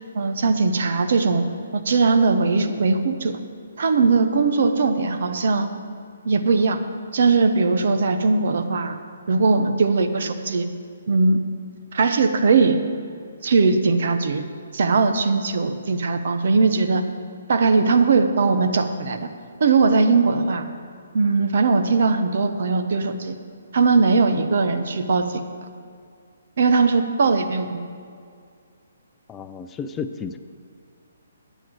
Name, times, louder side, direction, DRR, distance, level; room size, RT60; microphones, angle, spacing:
voice 1, 0.1-1.4 1.7-3.4 3.8-5.7 6.2-6.8 7.1-9.0 9.3-10.7 11.1-11.4 11.9-12.8 13.4-14.4 14.7-17.0 17.5-19.3 19.6-20.7 21.1-23.4 23.7-25.4 26.6-27.8, right 4 dB, 60° right, 8 dB, 0.9 m, -19 dB
voice 2, 29.3-30.4, left 6 dB, 15° left, 9 dB, 0.4 m, -32 dB
9.2 x 7.5 x 8.3 m, 2.3 s
figure-of-eight pair, 140°, 0 cm